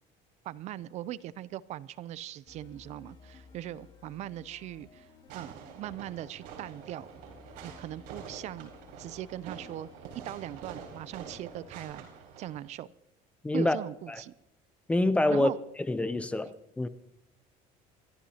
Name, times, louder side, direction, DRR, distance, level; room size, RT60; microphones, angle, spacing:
voice 1, 0.4-7.2 7.6-8.7 9.0-9.9 10.2-12.1 12.4-12.9 13.5-14.3 15.3-15.6, right 13 dB, 45° right, 0.4 m, -40 dB
sound 1, 2.5-11.8, left 4 dB, 30° left, 2.8 m, -56 dB
Fireworks, 5.3-12.7, right 6 dB, 75° right, 4.4 m, -47 dB
voice 2, 13.4-13.8 14.1-14.2 14.9-15.5 15.9-16.9, left 2 dB, 10° left, 0.5 m, -26 dB
28.0 x 13.0 x 2.8 m
cardioid pair, 150°, 16 cm